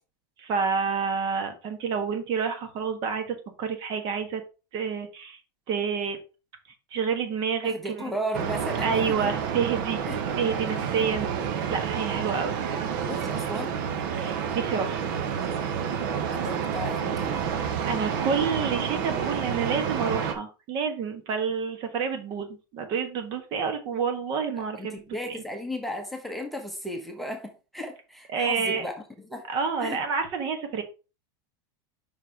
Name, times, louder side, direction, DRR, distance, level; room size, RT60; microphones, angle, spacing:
voice 1, 0.4-4.4 4.7-5.4 5.7-6.2 6.9-8.0 8.8-10.0 10.4-13.0 14.2-15.0 17.9-25.0 25.3-25.4 28.3-28.8 29.5-30.8, right 6 dB, 40° right, 7 dB, 1.5 m, -29 dB
voice 2, 7.6-9.3 10.0-10.2 13.1-13.8 16.3-17.5 24.8-28.9 29.2-29.5 29.8-30.0, equal, ahead, 2 dB, 1.1 m, -35 dB
sound 1, 8.3-20.3, right 7 dB, 60° right, 1.1 m, -29 dB
5.6 x 4.7 x 4.6 m, 0.32 s
supercardioid pair, 160°, 12 cm